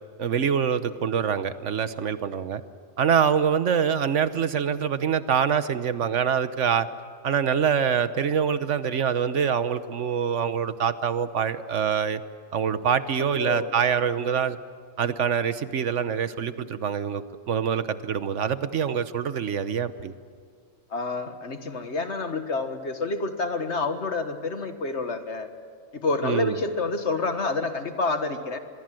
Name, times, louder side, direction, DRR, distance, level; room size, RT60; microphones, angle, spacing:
voice 1, 0.2-2.6 3.0-6.9 7.2-12.2 12.5-14.6 15.0-20.1 26.2-26.5, right 7 dB, 65° right, 12 dB, 1.2 m, -25 dB
voice 2, 13.4-13.7 20.9-25.5 25.9-28.6, left 3 dB, 60° left, 8 dB, 1.9 m, -28 dB
25.0 x 22.5 x 7.7 m, 2.1 s
omnidirectional pair, 1.3 m